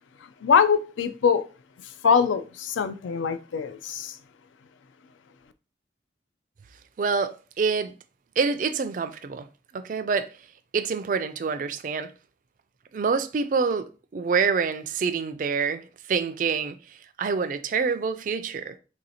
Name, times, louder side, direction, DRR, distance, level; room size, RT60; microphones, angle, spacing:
voice 1, 0.4-1.4 2.0-4.2, left 6 dB, 85° left, 0.4 m, -23 dB
voice 2, 7.0-7.9 8.4-9.5 9.7-10.3 10.7-12.1 12.9-16.8 17.2-18.8, right 5 dB, 45° right, 0.3 m, -26 dB
3.1 x 2.7 x 4.1 m
head